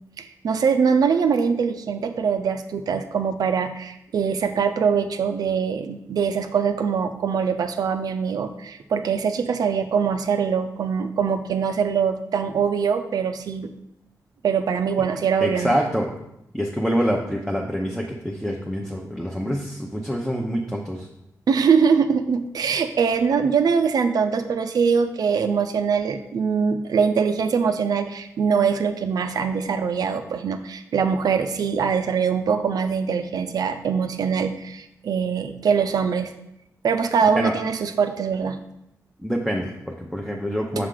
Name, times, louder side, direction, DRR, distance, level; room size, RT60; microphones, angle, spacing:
voice 1, 0.2-13.7 14.4-15.8 21.5-36.3 36.8-38.6, right 6 dB, 75° right, 7 dB, 0.5 m, -23 dB
voice 2, 15.4-16.1 16.5-21.1 37.4-37.5 39.2-40.9, equal, ahead, -1 dB, 0.7 m, -26 dB
6.5 x 4.8 x 3.8 m, 0.81 s
wide cardioid pair, 110°, 7 cm